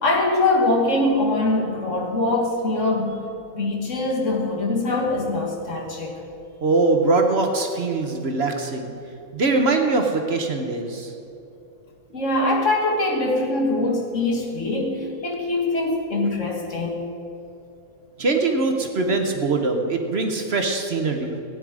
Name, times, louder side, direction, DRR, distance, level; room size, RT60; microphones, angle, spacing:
voice 1, 0.0-3.2 3.5-6.2 12.1-17.1, left 2 dB, 60° left, -1 dB, 2.1 m, -23 dB
voice 2, 6.6-8.9 9.3-11.1 18.2-21.4, right 3 dB, 50° right, 4 dB, 1.2 m, -22 dB
16.0 x 9.6 x 4.9 m, 2.6 s
omnidirectional pair, 1.5 m